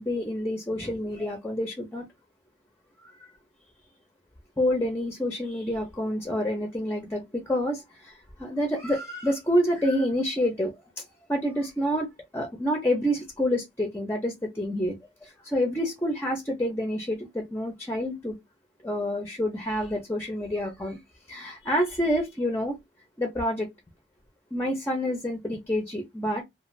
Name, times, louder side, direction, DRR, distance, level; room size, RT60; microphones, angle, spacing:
voice 1, 0.0-2.1 3.2-3.3 4.6-11.0 11.3-12.1 12.3-18.4 18.8-21.0 21.3-22.8 23.2-23.7 24.5-26.4, equal, 15° left, 0.6 m, -28 dB
2.5 x 2.3 x 3.1 m
head